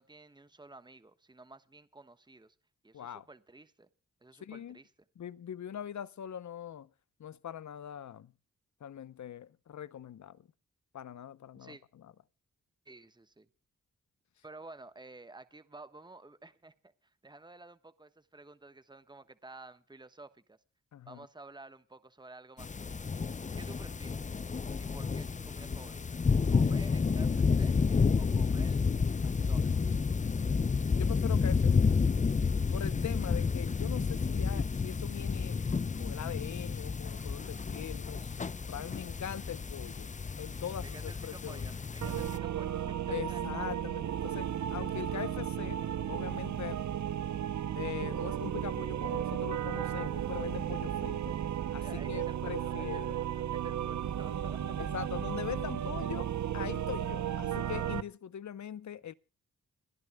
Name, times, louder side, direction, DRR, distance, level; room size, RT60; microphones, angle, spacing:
voice 1, 0.0-2.5 2.8-3.9 4.2-4.9 11.5-11.8 12.8-13.5 14.4-20.6 21.1-23.1 23.6-24.4 24.8-26.2 26.5-27.8 28.2-28.8 29.2-29.9 40.8-43.6 51.8-54.8, right 2 dB, 15° right, 1.2 m, -52 dB
voice 2, 2.9-3.3 4.4-4.8 5.2-6.9 7.2-8.3 8.8-10.5 10.9-12.1 20.9-21.3 31.0-31.9 32.7-35.6 35.9-40.1 40.4-41.7 43.1-46.8 47.7-51.4 51.7-53.2 54.8-59.1, left 9 dB, 65° left, 0.8 m, -42 dB
sound 1, 22.6-42.4, left 5 dB, 25° left, 0.5 m, -30 dB
sound 2, 42.0-58.0, right 10 dB, 70° right, 0.8 m, -34 dB
29.5 x 10.5 x 2.3 m
cardioid pair, 55°, 31 cm